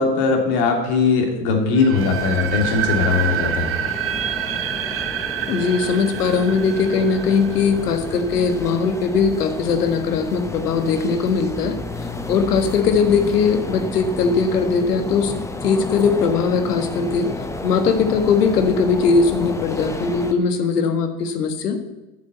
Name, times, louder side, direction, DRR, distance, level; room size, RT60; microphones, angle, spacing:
voice 1, 0.0-3.7, left 4 dB, 55° left, 3 dB, 3.0 m, -19 dB
sound 1, 1.7-8.6, right 9 dB, 30° right, 0.7 m, -27 dB
sound 2, 2.0-20.3, left 2 dB, 5° left, 0.8 m, -31 dB
voice 2, 5.5-11.8 12.3-15.3 15.6-17.3 17.6-21.8, left 5 dB, 85° left, 9 dB, 1.6 m, -20 dB
8.2 x 7.4 x 8.1 m, 1.0 s
hypercardioid pair, 100°, 46 cm